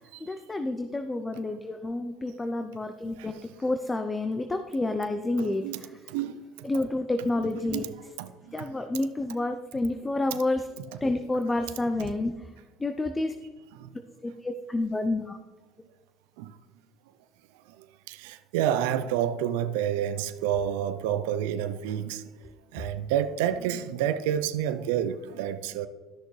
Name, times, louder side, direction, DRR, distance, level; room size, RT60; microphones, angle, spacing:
voice 1, 0.2-6.0 6.6-7.9 8.5-10.7 11.0-12.5 12.8-13.4 14.2-15.4, left 2 dB, 20° left, 0.6 m, -29 dB
voice 2, 5.4-5.8 6.1-6.4 7.7-7.9 8.2-8.3 8.6-8.7 13.8-13.9 16.4-16.5 18.1-22.2 22.7-25.9, right 10 dB, 85° right, 0.5 m, -29 dB
13.0 x 6.4 x 3.2 m
supercardioid pair, 85°, 0 cm